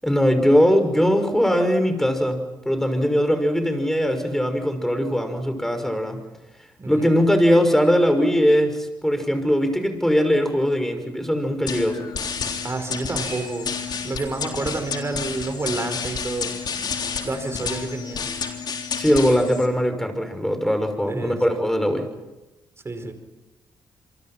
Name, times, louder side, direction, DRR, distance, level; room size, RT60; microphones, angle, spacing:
voice 1, 0.0-6.3 6.9-12.1 19.0-22.1, equal, 5° left, 7 dB, 6.0 m, -20 dB
voice 2, 6.8-7.1 12.6-13.7 14.0-16.6 17.2-18.3 21.1-21.6 22.8-23.1, right 3 dB, 30° right, 8 dB, 5.1 m, -29 dB
sound 1, 11.7-19.7, left 6 dB, 60° left, 3.5 m, -30 dB
28.5 x 24.0 x 6.0 m, 1.0 s
supercardioid pair, 55°, 8 cm